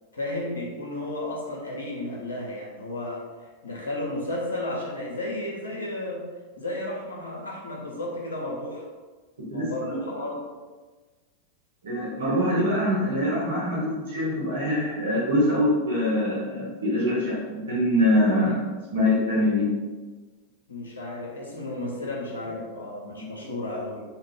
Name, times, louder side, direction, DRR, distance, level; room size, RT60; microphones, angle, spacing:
voice 1, 0.1-6.2 6.6-8.9 9.5-10.4 20.7-24.0, left 1 dB, 75° left, -2 dB, 0.7 m, -33 dB
voice 2, 9.4-9.9 11.8-18.6 18.9-19.7 23.1-23.3, left 1 dB, 65° right, -7 dB, 0.9 m, -24 dB
2.4 x 2.3 x 3.4 m, 1.3 s
figure-of-eight pair, 90°, 0 cm